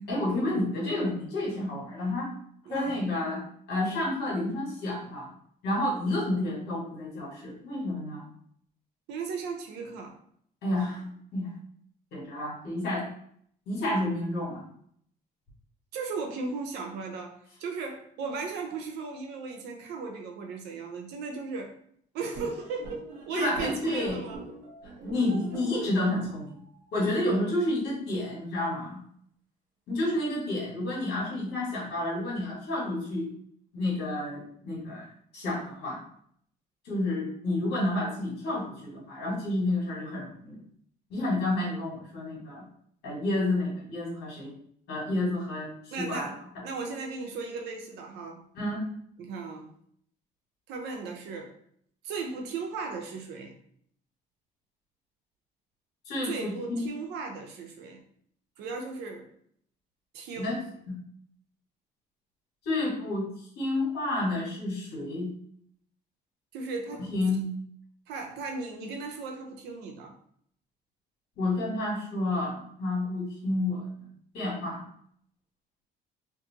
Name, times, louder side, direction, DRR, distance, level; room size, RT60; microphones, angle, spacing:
voice 1, 0.1-2.4 2.7-5.3 5.6-8.3 10.6-11.5 12.1-13.1 13.7-14.7 23.3-24.2 25.0-26.6 26.9-29.0 29.9-33.3 33.7-36.0 36.8-40.6 41.1-42.7 43.0-44.5 44.9-46.6 48.5-48.9 56.0-56.9 60.3-60.6 60.9-61.0 62.6-63.3 63.5-65.3 67.0-67.5 71.4-74.1 74.3-74.8, left 1 dB, 75° left, 1.5 m, -30 dB
voice 2, 2.7-3.0 9.1-10.2 15.9-21.8 22.1-24.4 45.9-48.4 49.2-49.7 50.7-51.5 52.0-53.6 56.2-58.0 58.6-59.3 60.1-60.6 66.5-67.1 68.1-70.2, right 4 dB, 80° right, 0.6 m, -36 dB
sound 1, 22.3-27.4, right 2 dB, 55° right, 0.9 m, -43 dB
2.5 x 2.5 x 2.8 m
cardioid pair, 110°, 17 cm